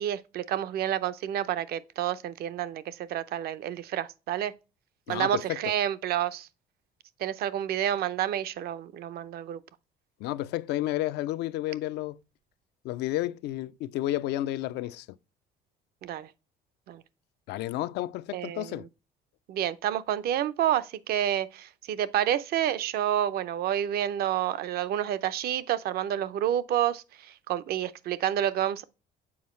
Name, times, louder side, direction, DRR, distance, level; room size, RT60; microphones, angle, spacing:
voice 1, 0.0-4.5 5.1-6.5 7.2-9.6 16.0-16.3 16.9-17.0 18.3-18.8 19.5-28.8, right 11 dB, 65° right, 0.6 m, -29 dB
voice 2, 5.1-5.7 10.2-12.2 12.8-15.1 17.5-18.9, left 15 dB, 85° left, 0.4 m, -31 dB
7.1 x 4.6 x 3.1 m
cardioid pair, 110°, 17 cm